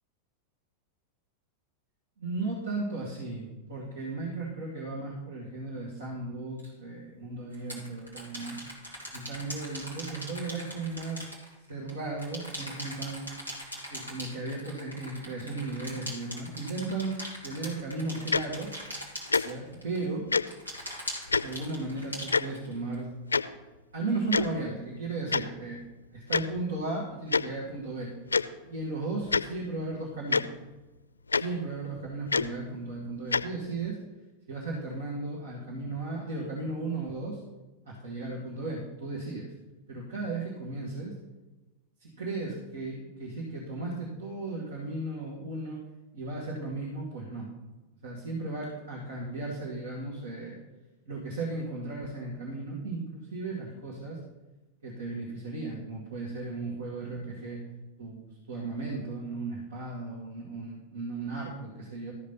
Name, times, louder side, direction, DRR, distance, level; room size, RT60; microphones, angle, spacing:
voice 1, 2.2-8.6 9.1-11.3 11.7-13.3 13.9-17.2 17.4-18.7 19.4-20.3 21.4-23.1 23.9-25.8 26.1-28.1 28.7-30.5 31.4-34.0 34.5-37.4 37.9-39.5 39.9-41.1 42.0-45.8 46.1-47.5 48.0-50.6 51.1-54.2 54.8-57.6 58.0-62.1, right 3 dB, 65° right, -4 dB, 2.3 m, -35 dB
sound 1, 6.6-6.7 7.5-11.9 12.2-20.0 20.5-22.9, equal, 85° right, 3.0 m, -41 dB
Tick-tock, 18.3-18.4 19.3-19.4 20.3-20.4 21.3-21.4 22.3-22.4 23.3-23.4 24.3-24.5 25.3-25.4 26.3-26.4 27.3-27.4 28.3-28.4 29.3-29.4 30.3-30.4 31.3-31.4 32.3-32.5 33.3-33.4, left 4 dB, 75° left, 0.4 m, -24 dB
13.5 x 5.2 x 5.6 m, 1.1 s
figure-of-eight pair, 90°, 0 cm